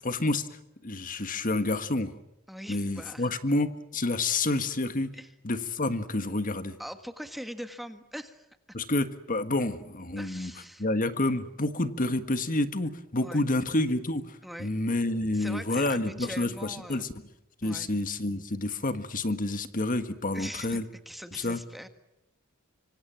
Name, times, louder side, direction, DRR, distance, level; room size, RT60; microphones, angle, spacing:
voice 1, 0.0-2.1 2.7-5.1 5.4-6.8 8.7-10.5 10.8-17.1 17.6-20.9 21.3-21.6, left 2 dB, 40° left, 10 dB, 1.6 m, -29 dB
voice 2, 2.5-3.3 5.1-5.3 6.8-8.5 10.2-10.9 13.2-13.4 14.4-14.7 15.3-17.1 17.6-17.9 20.3-21.9, equal, ahead, 8 dB, 1.6 m, -42 dB
25.5 x 25.5 x 7.5 m, 0.90 s
head